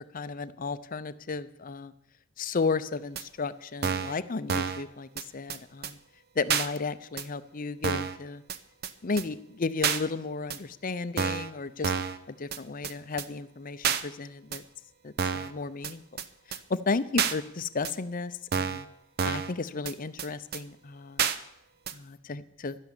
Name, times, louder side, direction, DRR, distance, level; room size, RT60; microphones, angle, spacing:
voice 1, 0.1-1.9 2.4-6.0 6.4-8.4 9.0-11.9 12.3-14.6 15.0-18.9 19.2-21.2 21.9-22.8, left 4 dB, 40° left, 14 dB, 0.6 m, -34 dB
sound 1, 3.2-3.3 3.8-4.2 4.5-4.8 5.2-5.3 5.5-5.6 5.8-5.9 6.5-6.7 7.2-7.3 7.8-8.2 8.5-8.6 8.8-8.9 9.2-9.3 9.8-10.0 10.5-10.6 11.2-11.5 11.8-12.2 12.5-12.6 12.8-12.9 13.2-13.3 13.8-14.0 14.5-14.6 15.2-15.5 15.8-15.9 16.2-16.3 16.5-16.6 17.2-17.3 17.8-17.9 18.5-18.8 19.2-19.5 19.9-20.0 20.2-20.3 20.5-20.6 21.2-21.4 21.9-22.0, right 7 dB, 45° right, 0.7 m, -28 dB
12.0 x 11.0 x 7.3 m, 0.77 s
head